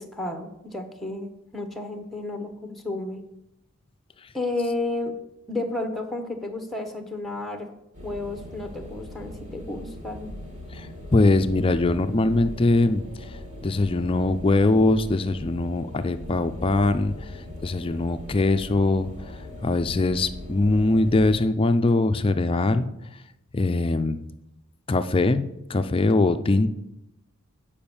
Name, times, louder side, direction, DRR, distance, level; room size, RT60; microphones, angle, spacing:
voice 1, 0.0-3.2 4.3-5.2 5.5-7.7 8.0-10.3, left 2 dB, ahead, 6 dB, 0.9 m, -32 dB
sound 1, 7.9-21.4, left 1 dB, 35° right, 1.9 m, -40 dB
voice 2, 11.1-13.0 13.6-17.1 17.6-19.1 19.6-22.9 23.5-24.2 24.9-25.4 25.7-26.7, left 2 dB, 25° left, 10 dB, 0.4 m, -21 dB
8.6 x 5.2 x 7.1 m, 0.86 s
head